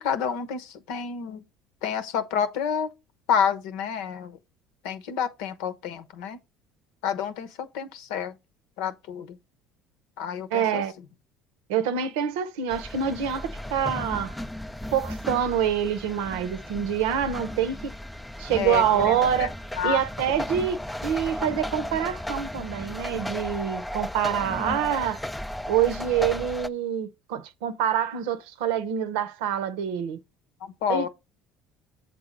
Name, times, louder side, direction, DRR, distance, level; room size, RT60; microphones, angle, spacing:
voice 1, 0.0-1.4 1.8-2.9 3.3-4.4 4.8-6.4 7.0-8.3 8.8-9.4 10.2-10.8 18.6-19.5 19.8-20.0 20.3-20.4 30.6-31.1, left 7 dB, 80° left, 0.9 m, -29 dB
voice 2, 10.5-10.9 11.7-14.3 14.9-17.9 18.4-19.5 19.8-25.2 25.7-30.2 30.9-31.1, right 9 dB, 85° right, 0.8 m, -26 dB
sound 1, 12.7-26.7, left 1 dB, 5° left, 0.3 m, -35 dB
7.7 x 3.6 x 5.2 m
supercardioid pair, 90°, 0 cm